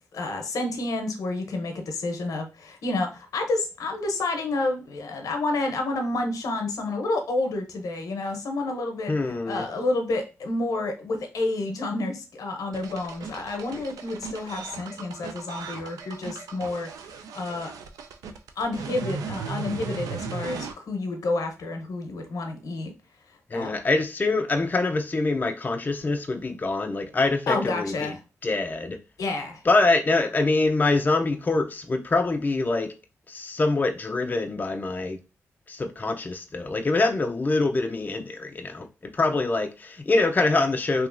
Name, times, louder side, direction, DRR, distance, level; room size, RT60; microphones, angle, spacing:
voice 1, 0.1-9.1 9.5-17.7 18.6-22.9 23.5-23.7 27.5-28.2 29.2-29.6, left 2 dB, 75° left, 0.7 m, -29 dB
voice 2, 9.1-9.7 23.5-28.1 28.4-29.0 29.7-32.9 33.3-35.2 35.7-41.1, left 3 dB, 30° left, 0.4 m, -24 dB
sound 1, 12.7-20.7, right 5 dB, 85° right, 0.3 m, -37 dB
2.9 x 2.7 x 2.5 m
supercardioid pair, 50°, 6 cm